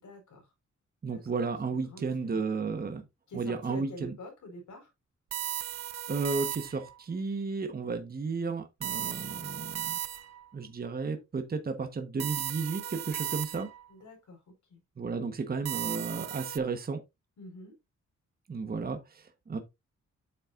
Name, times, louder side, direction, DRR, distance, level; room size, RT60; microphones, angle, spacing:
voice 1, 0.0-0.5 1.1-1.4 1.7-2.5 3.3-4.9 13.9-14.4 14.7-14.8 17.4-17.7, left 1 dB, 80° left, 4.8 m, -47 dB
voice 2, 1.0-3.0 3.3-4.1 6.1-10.0 10.5-13.7 15.0-17.0 18.5-19.6, right 4 dB, 30° right, 1.2 m, -33 dB
sound 1, 5.3-7.0 8.8-10.5 12.2-13.9 15.6-16.6, right 11 dB, 60° right, 0.6 m, -36 dB
8.9 x 7.4 x 2.5 m
wide cardioid pair, 140°, 29 cm